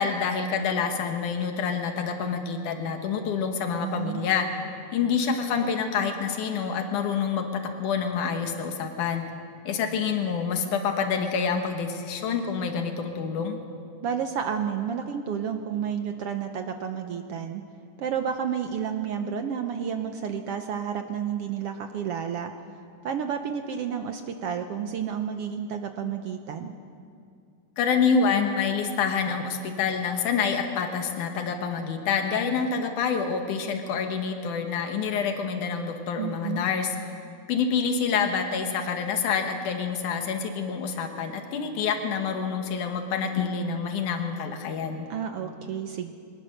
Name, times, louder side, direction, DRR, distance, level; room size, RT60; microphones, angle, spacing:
voice 1, 0.0-4.5 4.9-9.3 9.7-13.6 27.8-36.9 37.5-45.1, left 6 dB, 90° left, 5 dB, 2.8 m, -27 dB
voice 2, 3.8-4.3 14.0-17.6 18.0-22.5 23.0-26.7 36.2-36.6 45.1-46.1, right 7 dB, 70° right, 6 dB, 1.5 m, -31 dB
23.0 x 19.0 x 6.6 m, 2.3 s
omnidirectional pair, 3.4 m